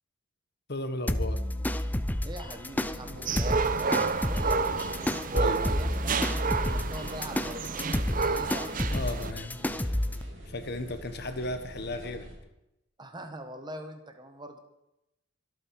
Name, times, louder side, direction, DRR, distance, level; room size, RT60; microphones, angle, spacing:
voice 1, 0.7-1.4 5.3-5.6 8.9-10.0 10.5-12.3, left 2 dB, 55° left, 9 dB, 1.3 m, -35 dB
sound 1, 1.1-10.2, left 1 dB, 10° left, 0.6 m, -31 dB
voice 2, 2.2-4.9 5.4-8.7 13.0-14.6, right 1 dB, 20° right, 6 dB, 1.4 m, -43 dB
sound 2, 2.7-12.4, equal, 75° right, 4.7 m, -45 dB
sound 3, 3.3-9.3, right 5 dB, 45° right, 0.7 m, -30 dB
23.5 x 8.7 x 4.8 m, 0.89 s
head